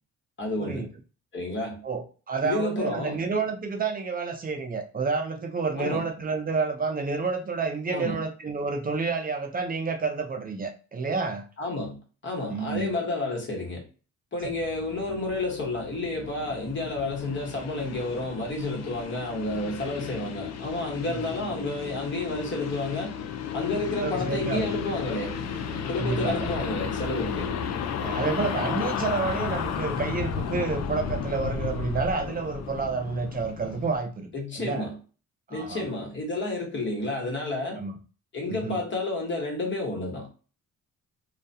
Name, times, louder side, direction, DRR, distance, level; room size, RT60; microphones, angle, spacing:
voice 1, 0.4-0.9 1.3-1.8 2.4-3.2 5.7-6.0 7.9-8.2 11.6-13.8 14.3-23.1 23.5-25.4 25.9-27.5 34.3-35.0 35.5-37.8 38.3-40.3, left 2 dB, 40° left, 1.1 m, -30 dB
voice 2, 1.8-11.4 12.5-13.0 21.1-21.3 24.0-24.7 26.0-26.5 28.0-34.3 34.6-34.9 35.5-35.8 37.8-38.0 38.5-38.8, right 4 dB, 30° right, 0.5 m, -29 dB
sound 1, 14.4-34.0, left 7 dB, 60° left, 0.5 m, -33 dB
2.3 x 2.1 x 2.7 m
cardioid pair, 90°, 30 cm